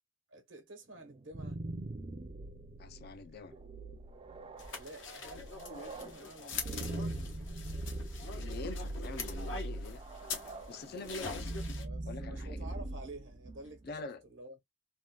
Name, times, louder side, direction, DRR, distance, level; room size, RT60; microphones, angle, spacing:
voice 1, 0.3-1.6 4.7-6.9 11.8-14.6, right 2 dB, 85° right, 1.0 m, -50 dB
sound 1, 1.1-13.9, right 2 dB, 30° right, 0.4 m, -42 dB
voice 2, 2.8-3.5 8.3-10.0 10.4-11.5 12.0-12.7 13.8-14.2, left 4 dB, 55° left, 0.5 m, -45 dB
sound 2, 4.6-11.8, left 4 dB, 80° left, 1.0 m, -43 dB
3.6 x 2.2 x 2.2 m
head